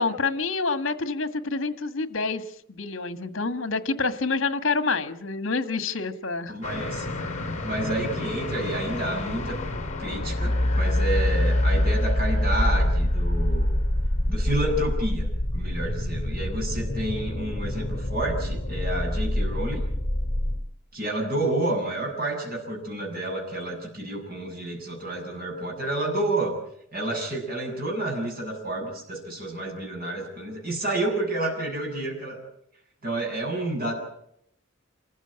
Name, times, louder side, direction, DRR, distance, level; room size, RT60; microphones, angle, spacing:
voice 1, 0.0-2.4 2.7-6.6, left 4 dB, 65° left, 10 dB, 1.6 m, -27 dB
voice 2, 6.5-7.0 7.6-9.6 10.0-13.7 14.3-15.3 15.5-19.8 20.9-26.5 26.9-32.4 33.0-33.9, right 1 dB, 45° right, 0 dB, 7.5 m, -29 dB
sound 1, 6.6-20.6, left 1 dB, 35° left, 3.1 m, -26 dB
27.0 x 15.0 x 8.8 m, 0.74 s
head